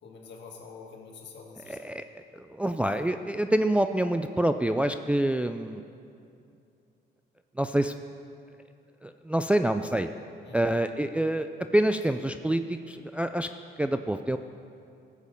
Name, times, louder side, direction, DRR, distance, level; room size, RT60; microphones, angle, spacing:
voice 1, 0.0-1.9 10.4-10.7, left 5 dB, 65° left, 0 dB, 1.9 m, -46 dB
voice 2, 1.6-5.8 7.6-7.9 9.0-10.1 10.5-11.5 11.7-13.5 13.8-14.4, right 1 dB, 5° right, 8 dB, 0.3 m, -27 dB
14.5 x 7.3 x 5.3 m, 2.5 s
cardioid pair, 100°, 20 cm